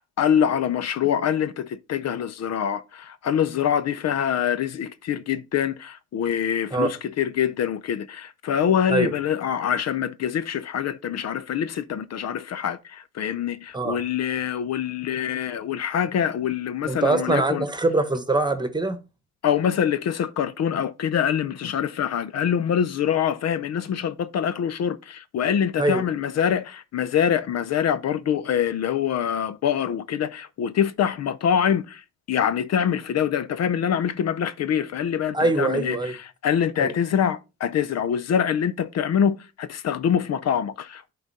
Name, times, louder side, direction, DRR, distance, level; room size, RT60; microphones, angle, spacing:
voice 1, 0.0-17.6 19.4-32.0 32.3-36.0 36.4-41.1, left 8 dB, 60° left, 0.6 m, -25 dB
voice 2, 16.9-19.0 25.8-26.1 35.3-36.1 36.8-36.9, right 2 dB, 15° right, 1.2 m, -23 dB
10.5 x 3.9 x 4.1 m
cardioid pair, 90°, 30 cm